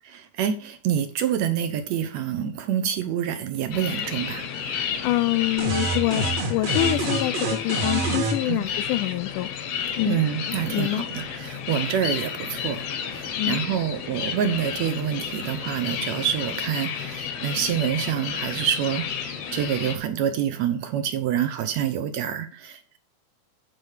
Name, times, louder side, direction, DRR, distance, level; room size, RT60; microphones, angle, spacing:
voice 1, 0.4-4.5 8.5-8.7 10.1-23.0, right 9 dB, 75° right, 10 dB, 1.6 m, -27 dB
sound 1, 3.7-20.0, left 8 dB, 65° left, 1.6 m, -31 dB
voice 2, 5.0-6.2 6.5-9.5 10.0-10.2 10.7-11.0 13.4-13.6, left 17 dB, 80° left, 15 dB, 1.9 m, -25 dB
sound 2, 5.6-8.4, right 3 dB, 55° right, 2.4 m, -26 dB
9.0 x 4.6 x 6.4 m, 0.38 s
omnidirectional pair, 4.0 m